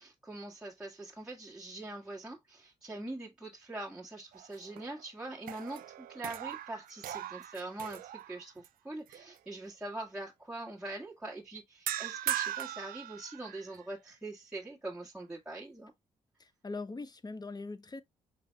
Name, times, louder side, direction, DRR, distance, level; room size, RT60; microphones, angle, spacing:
voice 1, 0.0-15.9, right 2 dB, 5° right, 1.5 m, -43 dB
sound 1, 4.3-5.0 5.4-8.7 9.1-9.4 11.9-13.8, right 12 dB, 70° right, 0.4 m, -39 dB
voice 2, 16.4-18.0, left 3 dB, 25° left, 0.9 m, -41 dB
5.8 x 3.4 x 2.2 m
hypercardioid pair, 45°, 15 cm